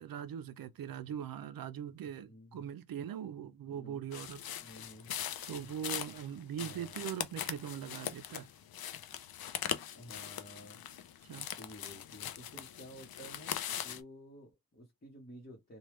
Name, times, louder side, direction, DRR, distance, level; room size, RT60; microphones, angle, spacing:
voice 1, 0.0-4.4 5.5-8.5 11.2-11.5, right 9 dB, 65° right, 0.5 m, -41 dB
voice 2, 2.2-2.7 3.7-4.0 4.6-5.2 6.6-7.0 9.9-11.3 11.5-15.8, equal, 25° left, 0.9 m, -53 dB
sound 1, 4.1-14.0, left 10 dB, 70° left, 0.5 m, -41 dB
3.3 x 2.2 x 3.0 m
wide cardioid pair, 135°, 38 cm